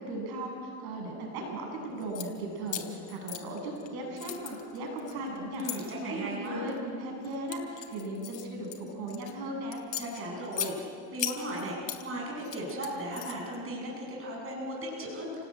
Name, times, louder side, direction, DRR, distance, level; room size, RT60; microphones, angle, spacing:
voice 1, 0.0-9.9, right 1 dB, 60° right, 1 dB, 8.0 m, -37 dB
sound 1, 2.0-2.3 2.7-3.9 4.2-5.8 6.4-6.8 7.2-9.3 9.7-10.7 11.2-12.0 12.4-13.6, left 11 dB, 45° left, 3.1 m, -37 dB
voice 2, 5.5-6.6 10.0-10.8 11.1-15.5, right 1 dB, 30° right, -2 dB, 7.4 m, -36 dB
29.0 x 18.5 x 9.0 m, 2.4 s
supercardioid pair, 125°, 44 cm